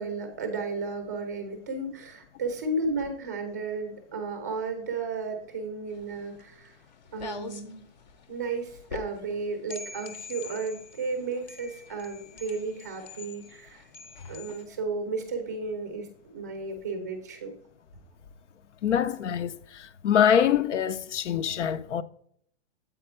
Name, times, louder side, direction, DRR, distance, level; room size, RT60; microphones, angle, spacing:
voice 1, 0.0-6.8 7.1-7.8 8.3-13.8 14.3-17.5, right 3 dB, 15° right, 0.5 m, -33 dB
sound 1, 5.9-14.7, left 4 dB, 40° left, 0.6 m, -44 dB
voice 2, 18.8-22.0, left 8 dB, 85° left, 0.6 m, -24 dB
7.8 x 4.4 x 4.3 m
hypercardioid pair, 175°, 35 cm